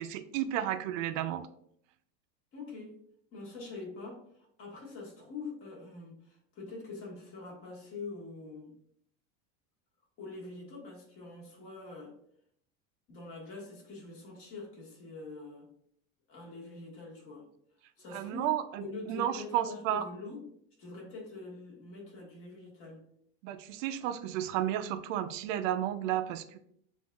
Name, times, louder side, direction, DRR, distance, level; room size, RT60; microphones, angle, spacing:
voice 1, 0.0-1.5 18.1-20.0 23.4-26.6, right 11 dB, 70° right, 10 dB, 0.5 m, -32 dB
voice 2, 2.5-3.0 3.3-8.7 10.2-12.1 13.1-15.7 16.3-17.5 18.0-18.5 18.8-20.4 20.8-23.0, left 3 dB, 35° left, -2 dB, 1.4 m, -44 dB
7.1 x 2.6 x 2.2 m, 0.69 s
supercardioid pair, 145°, 39 cm